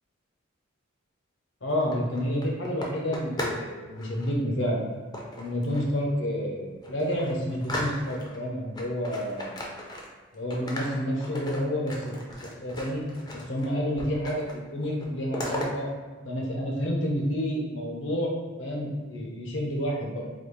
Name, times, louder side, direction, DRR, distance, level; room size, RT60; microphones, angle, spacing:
voice 1, 1.6-4.9 5.3-9.5 10.3-12.0 12.4-13.0 13.3-15.9 16.2-20.2, equal, 65° left, -2 dB, 0.8 m, -29 dB
sound 1, 1.7-3.7 3.9-4.3 5.1-6.0 6.4-6.5 6.8-8.4 8.8-10.3 10.5-13.7 14.0-14.6 14.8-15.7, left 1 dB, 20° left, 0.5 m, -37 dB
4.1 x 2.4 x 3.2 m, 1.4 s
head